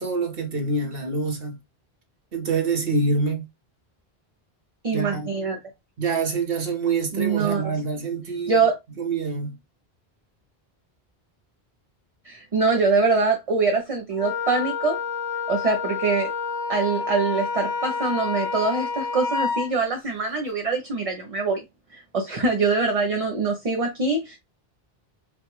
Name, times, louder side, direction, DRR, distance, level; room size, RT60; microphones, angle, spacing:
voice 1, 0.0-1.6 2.3-3.4 4.9-5.3 6.0-8.6 9.0-9.6, right 4 dB, 65° right, 1.4 m, -26 dB
voice 2, 4.8-5.6 7.1-7.6 8.5-8.7 12.2-15.0 15.5-16.3 16.7-21.6 21.9-24.4, right 4 dB, 40° right, 0.7 m, -24 dB
Wind instrument woodwind instrument, 14.2-19.7, left 5 dB, 50° left, 1.1 m, -28 dB
5.1 x 2.4 x 3.1 m
omnidirectional pair, 1.0 m